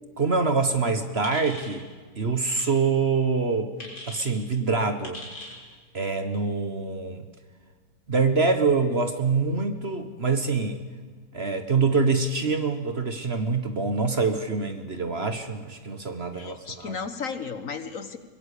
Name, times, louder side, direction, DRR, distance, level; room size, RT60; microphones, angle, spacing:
voice 1, 0.2-1.9 2.2-5.2 5.9-7.2 8.1-10.8 11.3-16.9, right 4 dB, 40° right, 9 dB, 1.4 m, -25 dB
sound 1, 1.2-1.8 2.5-2.7 3.8-4.3 5.0-5.6, left 1 dB, 80° left, 4.7 m, -40 dB
voice 2, 16.3-18.2, left 5 dB, 50° left, 11 dB, 1.5 m, -34 dB
23.5 x 21.0 x 8.5 m, 1.5 s
omnidirectional pair, 1.9 m